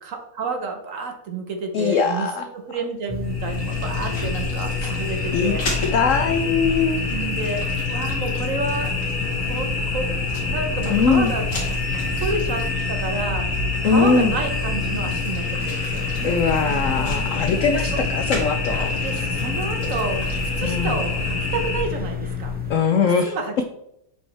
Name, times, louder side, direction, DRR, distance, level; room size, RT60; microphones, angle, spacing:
voice 1, 0.0-5.6 7.1-8.9 9.4-10.1 10.5-11.5 12.2-13.5 13.8-16.1 16.7-17.0 17.7-18.0 19.0-22.6 23.2-23.7, right 3 dB, 55° right, 5 dB, 1.1 m, -30 dB
voice 2, 1.7-2.5 5.3-5.5 5.9-7.0 10.9-11.3 13.8-14.4 16.2-18.9 20.6-21.0 22.7-23.3, left 5 dB, 80° left, 6 dB, 0.7 m, -21 dB
sound 1, 3.1-22.8, left 6 dB, 10° right, 0.4 m, -29 dB
sound 2, 3.2-21.8, left 2 dB, 45° left, 2.3 m, -27 dB
7.9 x 4.7 x 3.3 m, 0.79 s
omnidirectional pair, 1.9 m